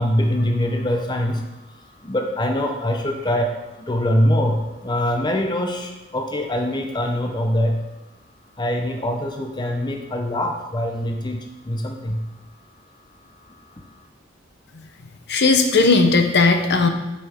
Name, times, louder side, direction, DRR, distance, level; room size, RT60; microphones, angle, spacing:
voice 1, 0.0-1.4 2.0-3.5 3.9-7.8 8.6-11.4 11.7-12.2, left 1 dB, 25° left, 3 dB, 0.7 m, -23 dB
voice 2, 15.3-16.9, left 3 dB, 60° left, 5 dB, 0.8 m, -16 dB
9.6 x 5.5 x 3.6 m, 1.0 s
head